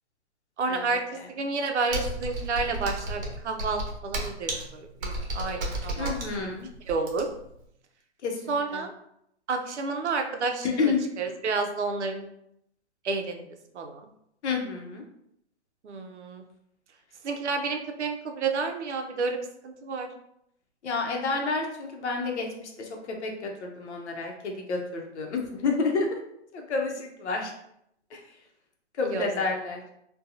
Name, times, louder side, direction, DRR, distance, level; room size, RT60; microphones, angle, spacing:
voice 1, 0.6-1.0 1.4-6.1 6.9-7.3 8.5-8.9 9.5-12.3 13.0-13.4 13.7-14.1 15.8-16.4 17.2-20.1 29.1-29.3, right 4 dB, 85° right, 4 dB, 0.6 m, -30 dB
Computer keyboard, 1.9-7.5, right 1 dB, 55° right, 0.8 m, -33 dB
voice 2, 6.0-6.7 8.2-8.8 10.6-11.1 14.4-15.0 20.8-26.2 26.5-27.5 28.1-28.2 28.9-29.8, left 4 dB, 75° left, 1 dB, 0.7 m, -30 dB
2.7 x 2.2 x 2.5 m, 0.76 s
hypercardioid pair, 135°, 34 cm